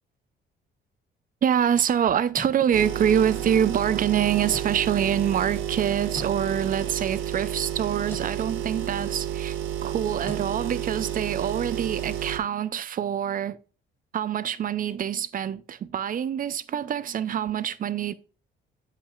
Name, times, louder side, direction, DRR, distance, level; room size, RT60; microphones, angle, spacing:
voice 1, 1.4-13.6 14.1-18.1, right 9 dB, 45° right, 0.5 m, -25 dB
sound 1, 2.1-2.6 4.4-4.8 6.1-6.4 8.0-8.3 10.2-10.5, left 1 dB, 10° left, 1.2 m, -40 dB
sound 2, 2.7-12.4, right 10 dB, 80° right, 0.7 m, -31 dB
8.1 x 5.6 x 2.3 m
cardioid pair, 90°, 20 cm